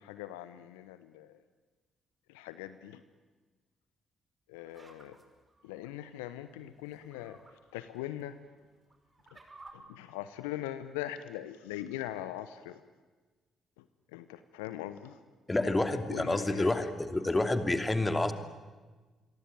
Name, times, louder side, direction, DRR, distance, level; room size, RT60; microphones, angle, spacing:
voice 1, 0.0-1.4 2.3-3.0 4.5-5.2 5.6-8.4 9.3-9.4 9.7-12.8 13.8-15.2 15.6-15.8 16.1-16.9, left 13 dB, 75° left, 13 dB, 0.9 m, -41 dB
sound 1, 4.5-5.9 6.8-7.5 8.0-8.1 8.7-9.7, right 3 dB, 25° right, 5.5 m, -55 dB
voice 2, 15.5-18.3, left 2 dB, 20° left, 8 dB, 2.8 m, -28 dB
28.0 x 22.5 x 9.3 m, 1.3 s
figure-of-eight pair, 45°, 0 cm